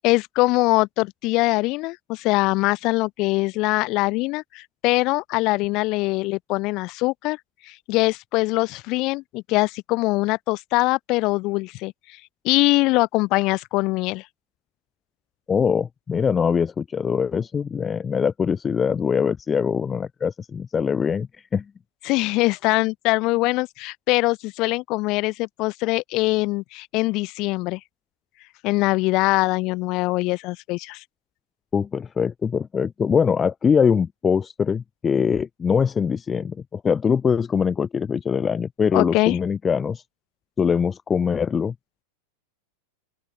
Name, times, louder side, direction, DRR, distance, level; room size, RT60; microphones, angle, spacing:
voice 1, 0.0-7.4 7.6-11.9 12.4-14.2 22.0-27.8 28.6-31.0 38.9-39.4, left 22 dB, 40° left, 2.4 m, -22 dB
voice 2, 15.5-21.6 31.7-40.0 40.6-41.7, left 6 dB, 20° left, 1.0 m, -22 dB
open air
figure-of-eight pair, 90°, 0 cm